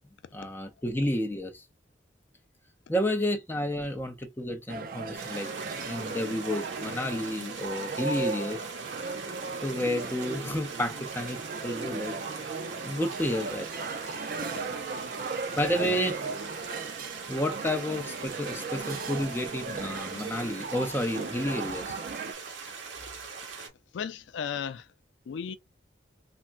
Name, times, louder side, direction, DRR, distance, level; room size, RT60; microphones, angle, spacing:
voice 1, 0.3-1.6 2.9-8.6 9.6-12.2 12.8-13.7 15.6-16.2 17.3-22.0, left 1 dB, 10° left, 0.4 m, -31 dB
sound 1, 4.7-22.3, right 4 dB, 45° right, 0.4 m, -37 dB
sound 2, 5.2-23.7, right 5 dB, 75° right, 0.9 m, -42 dB
voice 2, 15.7-16.1 23.6-23.7 23.9-24.9 25.3-25.6, left 7 dB, 70° left, 0.3 m, -36 dB
3.3 x 2.1 x 2.4 m
head